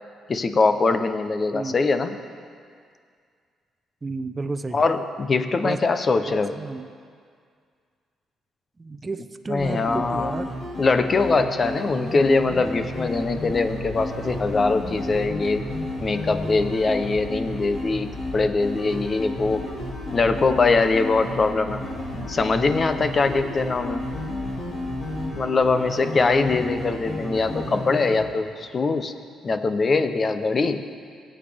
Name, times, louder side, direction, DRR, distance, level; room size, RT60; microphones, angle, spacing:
voice 1, 0.3-2.2 4.7-6.5 9.5-10.3 10.8-15.7 16.0-19.6 20.1-21.8 22.3-24.0 25.3-29.1 29.4-30.8, left 3 dB, 40° left, 9 dB, 0.7 m, -22 dB
voice 2, 4.0-4.8 5.6-5.9 6.2-6.9 8.8-10.5, right 3 dB, 25° right, 10 dB, 0.6 m, -32 dB
sound 1, 9.6-28.2, left 1 dB, 55° left, 3.4 m, -32 dB
sound 2, 12.9-25.3, left 3 dB, 70° left, 2.7 m, -40 dB
18.5 x 8.7 x 3.5 m, 2.1 s
cardioid pair, 90°, 0 cm